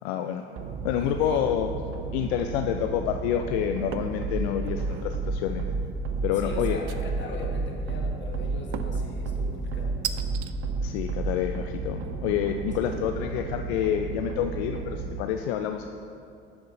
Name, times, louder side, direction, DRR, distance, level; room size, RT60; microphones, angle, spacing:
voice 1, 0.0-0.4 0.8-1.7 2.1-5.7 6.2-6.8 10.8-15.9, left 9 dB, 65° left, 6 dB, 0.5 m, -28 dB
sound 1, 0.6-15.2, right 3 dB, 40° right, 0.8 m, -32 dB
voice 2, 0.8-1.4 6.4-9.9 12.8-13.0, left 3 dB, 35° left, 0 dB, 1.4 m, -40 dB
sound 2, 3.9-4.2 4.7-5.1 6.9-7.4 8.7-9.1 10.0-10.5, right 11 dB, 75° right, 0.5 m, -36 dB
7.7 x 5.6 x 4.0 m, 2.5 s
hypercardioid pair, 70°, 34 cm